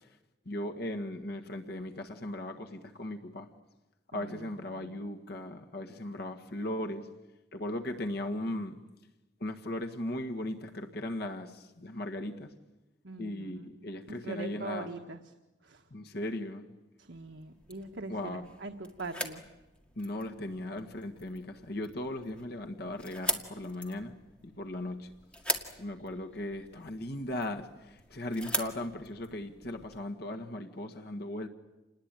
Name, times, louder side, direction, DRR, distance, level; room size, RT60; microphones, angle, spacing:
voice 1, 0.4-3.5 4.1-7.1 7.5-8.8 9.4-12.5 13.2-14.9 15.9-16.7 18.1-18.4 20.0-24.1 24.4-25.1 25.8-31.5, left 1 dB, 60° left, 4 dB, 1.7 m, -37 dB
voice 2, 4.1-5.0 13.0-15.2 15.6-15.8 17.0-19.4, right 3 dB, 75° right, 4 dB, 1.4 m, -43 dB
sound 1, 17.1-30.0, equal, 5° left, 2.0 m, -41 dB
28.5 x 20.0 x 9.1 m, 1.1 s
head